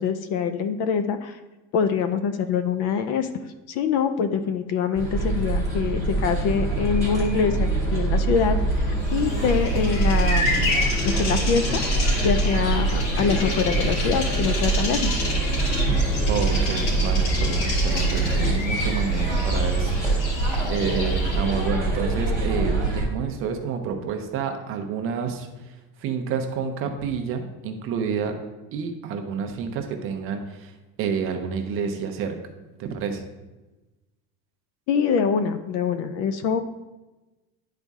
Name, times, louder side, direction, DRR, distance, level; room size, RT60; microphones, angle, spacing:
voice 1, 0.0-1.4 1.7-3.3 3.7-8.6 8.9-11.8 12.2-15.2 34.9-36.6, left 6 dB, 45° left, 10 dB, 0.4 m, -24 dB
sound 1, 4.9-23.0, right 2 dB, 10° left, 1.9 m, -24 dB
Bird vocalization bird call bird song, 9.0-21.7, left 2 dB, 70° left, 2.5 m, -31 dB
voice 2, 16.3-20.4 20.6-25.5 26.0-28.4 28.7-30.7 31.0-32.4 32.8-33.2, right 6 dB, 35° right, 5 dB, 0.7 m, -29 dB
10.5 x 4.1 x 3.5 m, 1.1 s
cardioid pair, 175°, 36 cm